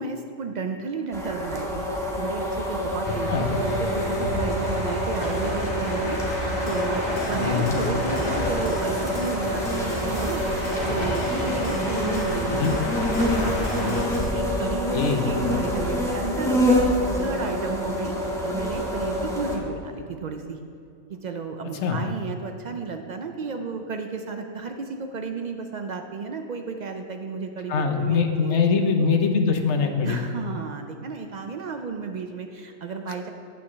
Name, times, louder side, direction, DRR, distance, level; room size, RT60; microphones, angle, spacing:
voice 1, 0.0-10.4 10.9-12.8 13.8-18.2 18.4-20.6 21.1-28.6 30.0-33.3, right 4 dB, 70° right, 5 dB, 0.4 m, -33 dB
sound 1, 1.1-19.6, equal, ahead, 1.1 m, -26 dB
sound 2, 3.0-14.1, equal, 35° left, 1.9 m, -31 dB
sound 3, 6.4-14.4, left 3 dB, 80° left, 1.4 m, -43 dB
voice 2, 7.3-7.8 12.5-12.7 14.9-15.2 21.8-22.0 27.7-30.2, left 5 dB, 60° left, 5 dB, 1.0 m, -23 dB
9.1 x 4.7 x 7.1 m, 2.4 s
omnidirectional pair, 1.4 m